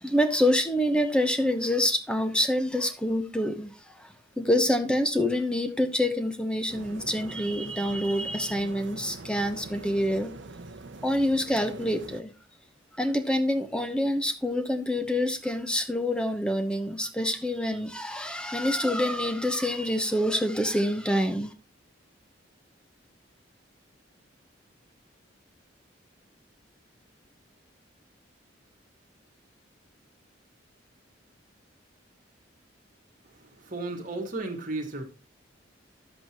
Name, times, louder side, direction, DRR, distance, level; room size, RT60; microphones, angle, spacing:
voice 1, 0.0-10.3 11.0-12.3 12.9-21.5, left 1 dB, 5° left, 0.9 m, -26 dB
sound 1, 6.7-12.2, right 3 dB, 70° right, 0.7 m, -44 dB
voice 2, 33.3-35.0, right 2 dB, 45° right, 1.9 m, -34 dB
10.5 x 7.8 x 3.0 m
head